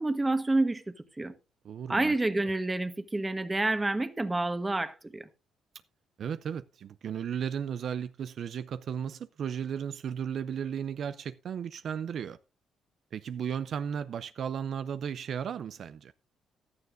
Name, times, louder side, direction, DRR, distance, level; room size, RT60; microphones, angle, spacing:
voice 1, 0.0-1.3 1.9-5.3, right 2 dB, 15° right, 1.3 m, -29 dB
voice 2, 1.6-2.1 6.2-12.4 13.1-16.1, right 8 dB, 60° right, 0.5 m, -35 dB
15.5 x 11.5 x 2.6 m
cardioid pair, 90°, 0 cm